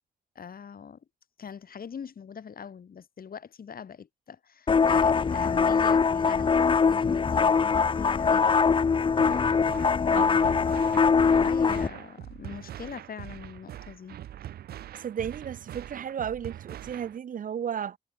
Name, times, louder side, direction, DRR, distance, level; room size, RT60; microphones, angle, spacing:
voice 1, 0.3-1.0 1.4-8.6 10.0-10.6 11.2-14.2, left 7 dB, 70° left, 3.3 m, -42 dB
sound 1, 4.7-11.9, left 5 dB, 35° left, 0.4 m, -22 dB
sound 2, 9.2-17.2, right 11 dB, 90° right, 0.8 m, -42 dB
voice 2, 15.0-18.0, right 8 dB, 60° right, 0.5 m, -34 dB
cardioid pair, 50°, 16 cm